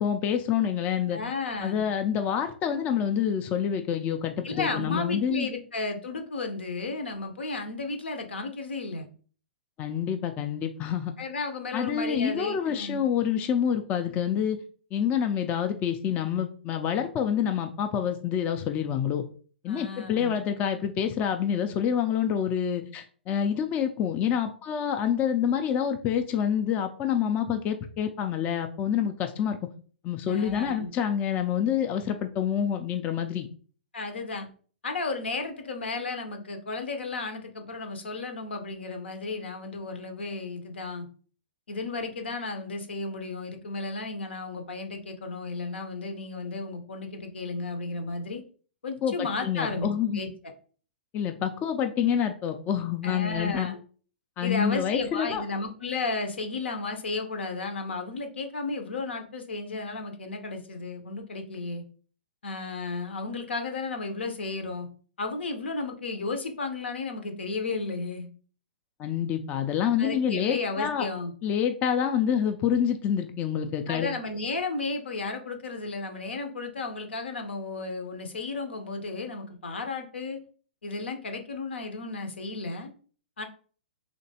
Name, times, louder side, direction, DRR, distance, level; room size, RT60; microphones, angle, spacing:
voice 1, 0.0-1.2 1.6-5.5 9.8-11.1 11.7-14.6 14.9-19.2 19.6-29.6 30.0-33.5 49.0-50.2 51.1-53.7 54.4-55.4 69.0-71.1 71.4-74.1, left 8 dB, 25° left, 6 dB, 0.4 m, -27 dB
voice 2, 1.1-1.8 4.4-9.1 11.2-13.0 19.7-20.4 30.3-30.9 33.9-34.5 34.8-41.1 41.7-48.4 48.8-50.3 53.0-53.8 54.4-61.8 62.4-64.9 65.2-68.3 70.0-71.3 73.9-80.4 80.8-82.9 83.4-83.5, left 3 dB, 80° left, 5 dB, 0.8 m, -33 dB
3.3 x 2.9 x 2.8 m, 0.42 s
hypercardioid pair, 125°, 6 cm